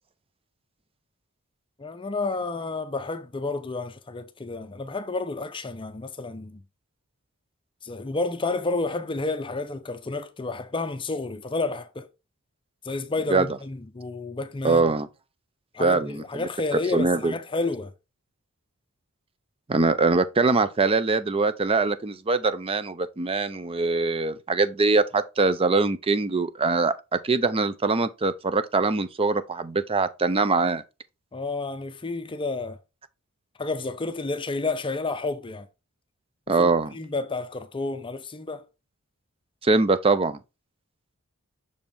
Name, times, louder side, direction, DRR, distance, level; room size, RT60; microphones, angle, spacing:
voice 1, 1.8-6.6 7.8-12.1 12.8-14.9 15.7-17.9 31.3-32.8 33.6-35.7 36.6-38.6, left 3 dB, 25° left, 0.6 m, -30 dB
voice 2, 14.6-15.1 15.8-16.2 16.9-17.3 19.7-30.8 36.5-36.9 39.6-40.4, right 3 dB, 25° right, 0.5 m, -23 dB
6.2 x 4.4 x 3.4 m
head